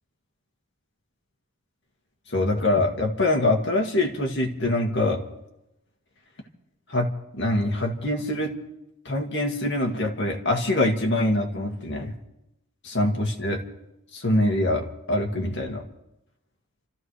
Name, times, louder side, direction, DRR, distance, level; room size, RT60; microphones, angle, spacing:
voice 1, 2.3-5.2 6.9-8.5 9.1-12.1 12.8-13.6 14.1-15.8, left 1 dB, 50° left, 1 dB, 2.0 m, -24 dB
30.0 x 14.0 x 3.3 m, 0.89 s
head